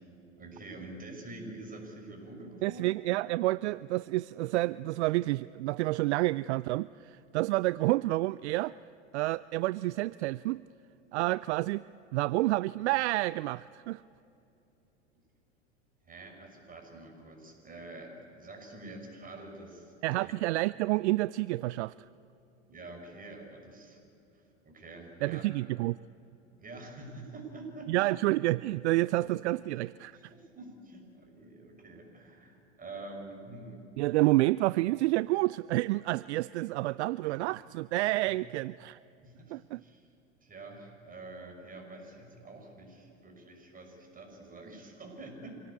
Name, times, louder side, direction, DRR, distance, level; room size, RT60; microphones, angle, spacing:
voice 1, 0.4-2.9 16.0-20.3 22.7-24.0 24.6-25.4 26.6-28.1 29.1-29.6 30.1-33.8 34.1-34.2 37.2-37.6 39.2-40.1 40.4-45.6, right 2 dB, 20° right, 2 dB, 6.1 m, -47 dB
voice 2, 2.6-8.8 9.1-10.6 11.1-11.8 12.1-14.0 20.0-21.9 25.2-26.0 27.9-30.3 34.0-39.0 39.5-39.8, right 19 dB, 65° right, 19 dB, 0.5 m, -29 dB
26.0 x 18.0 x 8.5 m, 2.9 s
hypercardioid pair, 90°, 37 cm